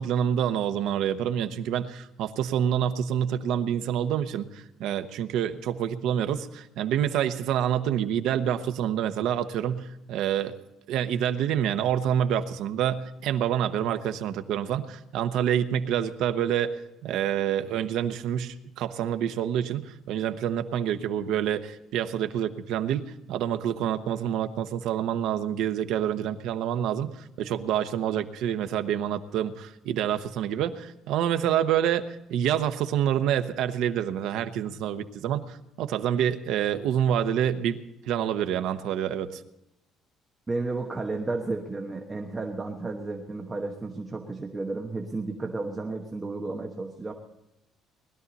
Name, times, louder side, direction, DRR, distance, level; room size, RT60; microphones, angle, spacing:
voice 1, 0.0-10.5 10.9-16.8 17.0-37.8 38.1-39.4, right 9 dB, 65° right, 9 dB, 0.9 m, -27 dB
voice 2, 40.5-47.1, right 3 dB, 15° right, 2 dB, 1.1 m, -32 dB
20.0 x 12.5 x 4.1 m, 0.90 s
cardioid pair, 175°, 0 cm